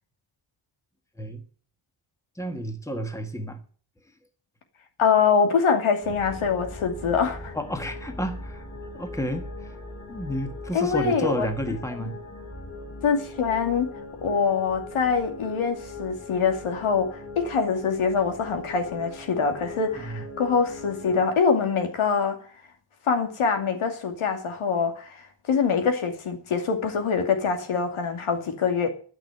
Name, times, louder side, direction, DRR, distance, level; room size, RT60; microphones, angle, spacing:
voice 1, 2.3-3.6 7.5-8.6 8.9-9.8 10.1-12.2 19.9-20.2, equal, 5° left, 1.6 m, -31 dB
voice 2, 5.0-7.5 10.7-11.5 13.0-13.9 14.2-22.4 23.1-28.9, left 5 dB, 90° left, 2.6 m, -24 dB
sound 1, 6.0-21.2, left 1 dB, 30° left, 4.3 m, -40 dB
13.0 x 6.1 x 9.2 m
wide cardioid pair, 135°, 48 cm